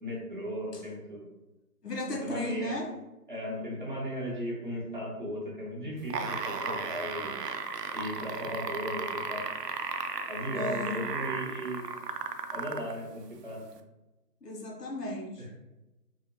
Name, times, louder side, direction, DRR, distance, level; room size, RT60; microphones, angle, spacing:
voice 1, 0.0-1.2 2.1-2.8 3.3-7.3 7.9-9.4 10.3-11.9 12.5-13.6 15.4-15.5, equal, 30° right, -5 dB, 0.9 m, -36 dB
voice 2, 1.8-2.9 10.5-11.0 14.4-15.6, left 1 dB, 85° left, 0 dB, 1.0 m, -35 dB
sound 1, 6.0-12.9 13.8-13.9, right 5 dB, 90° right, 0.5 m, -35 dB
3.4 x 2.7 x 2.8 m, 1.0 s
figure-of-eight pair, 160°, 47 cm